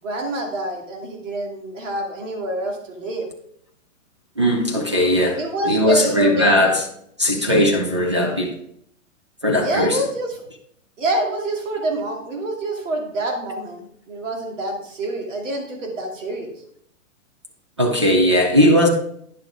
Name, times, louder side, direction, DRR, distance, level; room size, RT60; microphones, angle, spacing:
voice 1, 0.0-3.3 5.3-6.7 9.6-10.4 11.0-16.6, right 1 dB, 70° right, 2.6 m, -27 dB
voice 2, 4.4-6.8 7.2-8.5 9.4-10.0 17.8-18.9, left 1 dB, 25° right, 0.4 m, -18 dB
9.9 x 6.5 x 3.5 m
hypercardioid pair, 170°, 39 cm